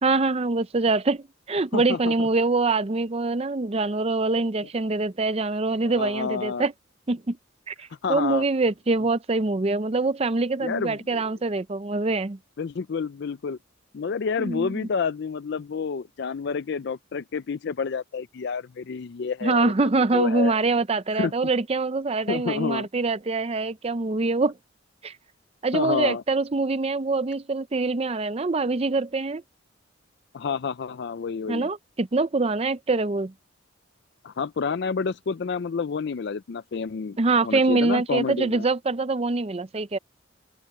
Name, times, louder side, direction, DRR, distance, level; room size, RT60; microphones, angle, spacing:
voice 1, 0.0-6.7 7.1-7.4 7.7-12.4 14.4-14.7 19.4-24.5 25.0-25.1 25.6-29.4 31.5-33.3 37.2-40.0, right 3 dB, 30° right, 0.5 m, -24 dB
voice 2, 1.7-2.3 5.9-6.7 8.0-8.4 10.6-11.3 12.6-13.6 13.9-20.6 21.2-21.3 22.3-22.9 25.7-26.2 30.3-31.7 34.2-38.7, left 5 dB, 55° left, 0.4 m, -29 dB
open air
head